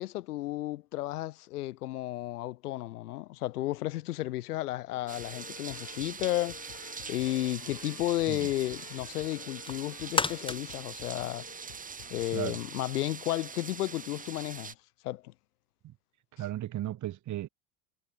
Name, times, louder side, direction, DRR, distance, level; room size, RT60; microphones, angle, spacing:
voice 1, 0.0-6.6 7.1-11.5 12.1-14.7 15.0-15.3, left 16 dB, 85° left, 3.9 m, -33 dB
sound 1, 4.9-12.3, left 35 dB, 65° left, 6.5 m, -51 dB
sound 2, 5.1-14.7, right 6 dB, 20° right, 1.8 m, -43 dB
sound 3, 9.3-12.1 12.5-12.6, left 3 dB, 10° left, 3.4 m, -34 dB
voice 2, 16.4-17.5, right 13 dB, 40° right, 3.1 m, -35 dB
supercardioid pair, 110°, 44 cm